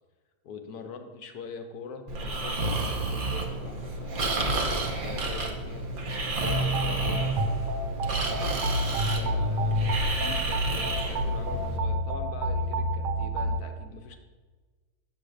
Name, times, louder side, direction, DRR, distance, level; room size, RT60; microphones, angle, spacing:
voice 1, 0.4-4.4 4.7-5.9 6.4-7.5 8.1-14.2, left 5 dB, 70° left, 6 dB, 1.1 m, -43 dB
Breathing, 2.1-11.8, right 2 dB, 50° right, 0.6 m, -31 dB
sound 1, 6.3-13.6, equal, 85° right, 1.3 m, -29 dB
8.0 x 3.2 x 6.4 m, 1.4 s
omnidirectional pair, 1.9 m